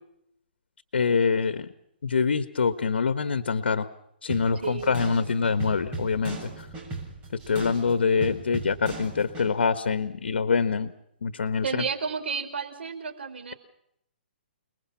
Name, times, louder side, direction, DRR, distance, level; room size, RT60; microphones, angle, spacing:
voice 1, 0.9-1.7 2.0-3.9 4.2-6.5 7.5-10.9 11.2-11.8, left 5 dB, 85° left, 11 dB, 1.4 m, -25 dB
sound 1, 4.3-9.5, right 3 dB, 20° right, 6.5 m, -38 dB
voice 2, 4.5-5.1 11.6-13.5, right 5 dB, 80° right, 9 dB, 4.8 m, -32 dB
29.5 x 20.5 x 5.8 m, 0.77 s
hypercardioid pair, 160°, 6 cm